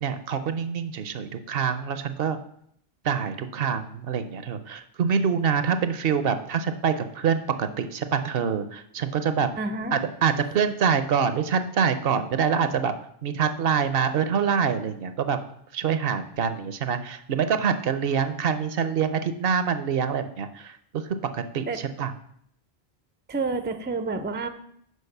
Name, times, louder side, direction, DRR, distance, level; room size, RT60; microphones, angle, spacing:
voice 1, 0.0-2.4 3.0-9.5 9.9-12.9 13.2-15.4 15.7-21.0 21.3-22.1, right 7 dB, 70° right, 10 dB, 0.8 m, -25 dB
voice 2, 9.6-10.0 21.7-21.8 23.3-24.5, right 3 dB, 15° right, 9 dB, 0.4 m, -29 dB
6.4 x 5.1 x 6.5 m, 0.70 s
omnidirectional pair, 1.1 m